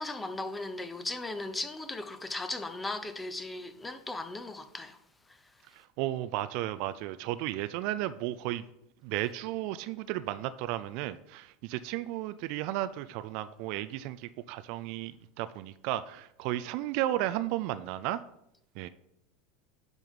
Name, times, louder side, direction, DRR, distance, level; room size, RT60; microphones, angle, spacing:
voice 1, 0.0-5.0, left 2 dB, 10° left, 0.8 m, -37 dB
voice 2, 6.0-8.6 9.0-18.2 18.8-18.9, right 14 dB, 55° right, 0.3 m, -34 dB
9.9 x 3.5 x 5.4 m
figure-of-eight pair, 80°, 0 cm